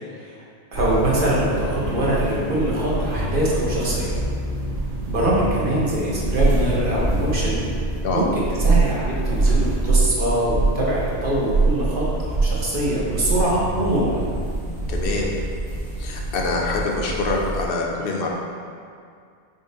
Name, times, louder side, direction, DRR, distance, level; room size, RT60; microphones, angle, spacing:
voice 1, 0.7-4.1 5.1-7.6 8.1-14.2, right 1 dB, 55° right, -6 dB, 0.9 m, -23 dB
sound 1, 0.7-17.6, right 2 dB, 90° right, 1.2 m, -24 dB
voice 2, 14.9-15.3 16.0-18.3, left 3 dB, 65° left, -1 dB, 0.7 m, -25 dB
5.2 x 2.1 x 3.8 m, 2.2 s
omnidirectional pair, 1.1 m